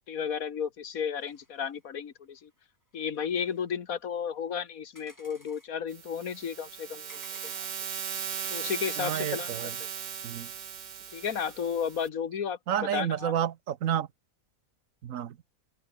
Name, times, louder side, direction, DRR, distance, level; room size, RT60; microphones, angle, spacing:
voice 1, 0.1-2.5 2.9-7.7 8.5-9.5 9.8-9.9 11.1-12.6 12.9-13.3, left 7 dB, 80° left, 1.8 m, -33 dB
sound 1, 1.2-1.9 2.4-2.6 2.9-3.7 5.0-5.7 7.1-7.8, equal, 10° left, 6.2 m, -56 dB
sound 2, 5.9-12.1, right 8 dB, 55° right, 1.2 m, -38 dB
voice 2, 9.0-9.7 10.2-10.5 12.7-14.1 15.0-15.4, right 10 dB, 75° right, 1.3 m, -30 dB
open air
omnidirectional pair, 1.5 m